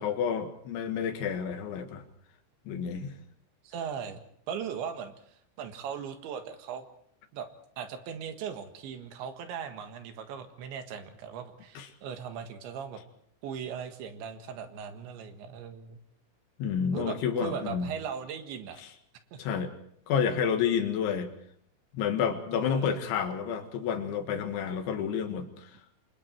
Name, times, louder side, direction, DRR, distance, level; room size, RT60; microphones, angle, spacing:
voice 1, 0.0-2.0 2.7-3.1 11.8-11.9 16.6-17.9 19.4-19.7 20.1-21.3 21.9-25.7, left 7 dB, 75° left, 7 dB, 4.2 m, -30 dB
voice 2, 3.6-4.2 4.5-6.9 7.3-7.5 7.8-13.0 13.4-16.0 16.9-18.8 19.3-19.4 22.5-23.0, right 7 dB, 75° right, 7 dB, 3.9 m, -38 dB
29.0 x 24.5 x 4.6 m, 0.66 s
omnidirectional pair, 5.6 m